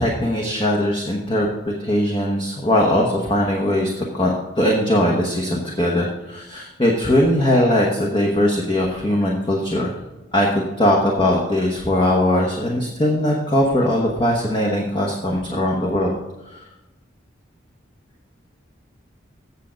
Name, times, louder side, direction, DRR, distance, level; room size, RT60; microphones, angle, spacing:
voice 1, 0.0-10.0 10.3-16.1 16.4-16.6, left 1 dB, 25° left, -1 dB, 1.0 m, -20 dB
8.3 x 7.3 x 5.1 m, 0.99 s
head